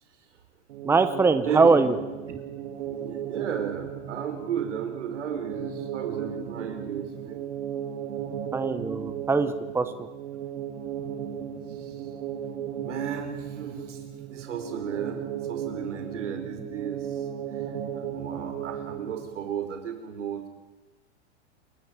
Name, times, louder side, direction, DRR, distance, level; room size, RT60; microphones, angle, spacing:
sound 1, 0.7-19.5, right 9 dB, 75° right, 2.7 m, -35 dB
voice 1, 0.8-2.0 2.3-2.4 8.5-10.1, right 4 dB, 5° right, 10 dB, 1.0 m, -22 dB
voice 2, 1.4-1.8 2.8-7.4 11.7-12.0 12.8-14.0 14.3-17.2 17.9-20.5, right 8 dB, 90° right, 6 dB, 4.8 m, -34 dB
28.0 x 13.0 x 8.9 m, 1.2 s
hypercardioid pair, 135°, 35 cm